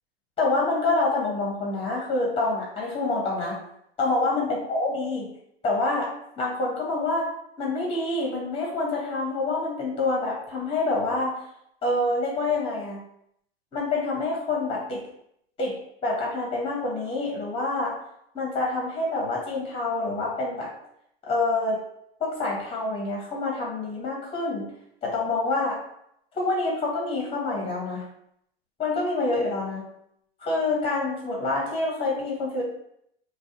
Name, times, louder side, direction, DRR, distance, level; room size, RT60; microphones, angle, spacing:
voice 1, 0.4-3.6 4.0-5.3 5.6-7.3 7.6-11.4 11.8-13.0 13.7-15.0 15.6-15.7 16.0-17.9 18.3-20.7 21.2-21.8 22.2-24.6 25.0-25.8 26.3-28.0 28.8-29.8 30.4-32.6, left 2 dB, 20° left, -3 dB, 1.0 m, -27 dB
2.4 x 2.2 x 2.6 m, 0.73 s
hypercardioid pair, 95°, 31 cm